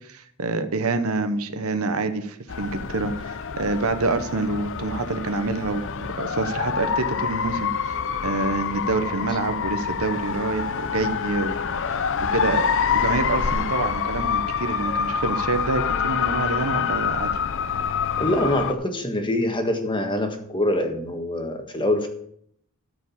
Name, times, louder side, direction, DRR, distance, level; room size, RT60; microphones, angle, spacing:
voice 1, 0.0-11.6 11.9-17.3, right 3 dB, 70° right, 10 dB, 1.0 m, -27 dB
sound 1, 2.5-18.7, left 7 dB, 60° left, 0.6 m, -26 dB
voice 2, 18.2-22.1, left 1 dB, 20° left, 5 dB, 1.5 m, -24 dB
13.5 x 5.0 x 7.1 m, 0.68 s
head